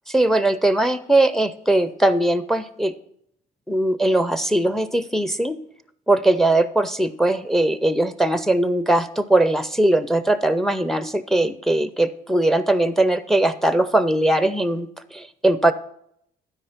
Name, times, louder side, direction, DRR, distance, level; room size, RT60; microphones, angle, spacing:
voice 1, 0.1-2.9 3.7-5.6 6.1-15.7, right 1 dB, ahead, 13 dB, 0.5 m, -20 dB
12.0 x 4.9 x 5.8 m, 0.71 s
cardioid pair, 110°, 17 cm